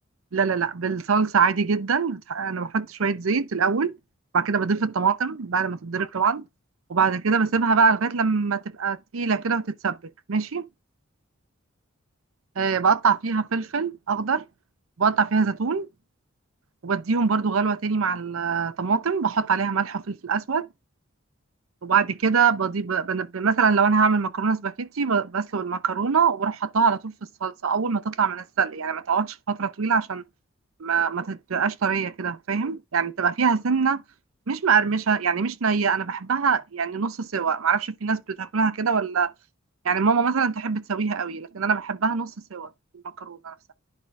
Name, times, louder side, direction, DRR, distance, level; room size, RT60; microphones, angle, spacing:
voice 1, 0.3-4.0 4.3-6.4 6.9-10.0 10.3-10.6 12.6-14.5 15.0-15.9 16.8-20.7 21.8-27.1 27.4-30.2 30.8-34.0 34.5-39.3 39.8-42.7 43.2-43.5, right 5 dB, 85° right, 0.6 m, -24 dB
10.5 x 4.7 x 2.6 m
head